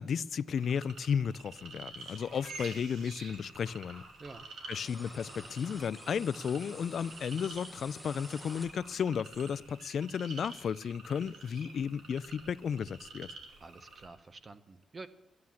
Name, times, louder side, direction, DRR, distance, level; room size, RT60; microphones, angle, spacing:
voice 1, 0.0-4.0 4.7-13.4, left 7 dB, 55° left, 0.3 m, -34 dB
sound 1, 0.6-14.1, right 3 dB, 90° right, 2.5 m, -49 dB
sound 2, 3.7-9.2, right 1 dB, 60° right, 3.8 m, -56 dB
sound 3, 4.8-9.2, left 1 dB, ahead, 0.9 m, -51 dB
voice 2, 13.6-15.1, right 3 dB, 30° right, 0.6 m, -48 dB
13.0 x 9.5 x 7.1 m
wide cardioid pair, 150°, 0 cm